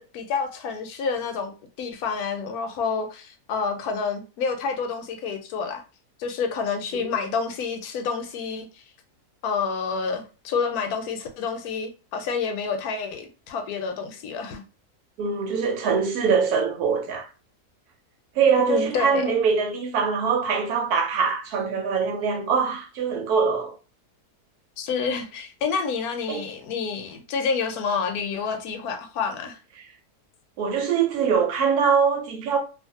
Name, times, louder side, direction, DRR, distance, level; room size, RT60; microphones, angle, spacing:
voice 1, 0.0-1.5 1.8-5.8 6.2-8.8 9.4-14.6 18.6-19.3 24.8-29.6, left 5 dB, 75° left, 1.0 m, -28 dB
voice 2, 15.2-17.3 18.3-23.7 26.3-26.4 29.8-29.9 30.6-32.6, right 6 dB, 75° right, 1.2 m, -23 dB
2.5 x 2.5 x 2.7 m
omnidirectional pair, 1.7 m